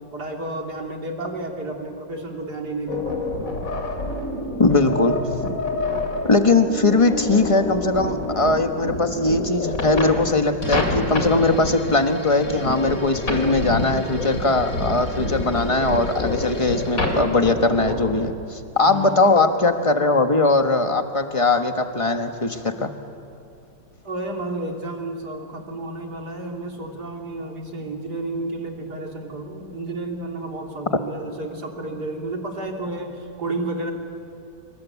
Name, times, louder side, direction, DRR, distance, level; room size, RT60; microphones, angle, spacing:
voice 1, 0.1-3.3 18.8-19.4 24.1-33.9, right 2 dB, 60° right, 1 dB, 3.5 m, -31 dB
sound 1, 2.9-18.2, left 2 dB, 50° left, 3.6 m, -27 dB
voice 2, 4.6-5.2 6.2-22.9, left 3 dB, 20° left, 6 dB, 1.2 m, -20 dB
sound 2, 10.6-17.2, left 1 dB, 65° left, 5.7 m, -41 dB
26.5 x 24.5 x 8.3 m, 2.5 s
omnidirectional pair, 1.9 m